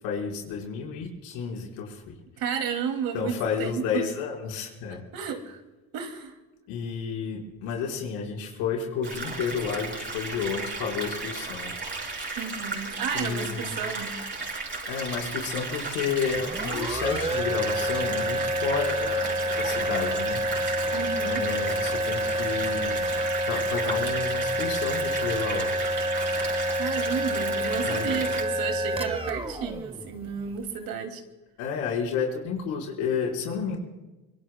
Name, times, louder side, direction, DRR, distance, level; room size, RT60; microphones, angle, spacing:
voice 1, 0.0-2.1 3.1-5.0 6.7-11.7 13.1-13.8 14.9-20.7 21.2-22.9 23.5-25.7 27.8-28.1 31.6-33.8, left 6 dB, 85° left, -1 dB, 4.7 m, -31 dB
voice 2, 2.4-4.0 5.1-5.6 5.9-6.3 12.4-14.2 20.9-21.4 26.7-31.2, right 7 dB, 70° right, 5 dB, 2.5 m, -32 dB
sound 1, 9.0-28.4, right 3 dB, 30° right, 5.7 m, -34 dB
sound 2, 16.1-30.7, right 1 dB, 15° right, 1.4 m, -28 dB
25.5 x 24.0 x 2.2 m, 1.1 s
supercardioid pair, 70°, 36 cm